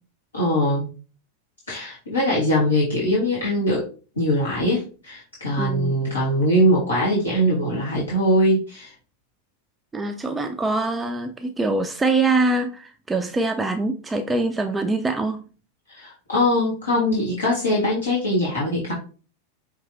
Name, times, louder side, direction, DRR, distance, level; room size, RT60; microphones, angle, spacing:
voice 1, 0.3-0.9 1.7-3.8 4.2-8.9 15.9-18.9, equal, 75° left, -5 dB, 1.4 m, -22 dB
voice 2, 5.6-6.0 9.9-15.4, right 3 dB, 10° right, 6 dB, 0.4 m, -24 dB
5.5 x 2.9 x 2.6 m, 0.37 s
figure-of-eight pair, 90°, 0 cm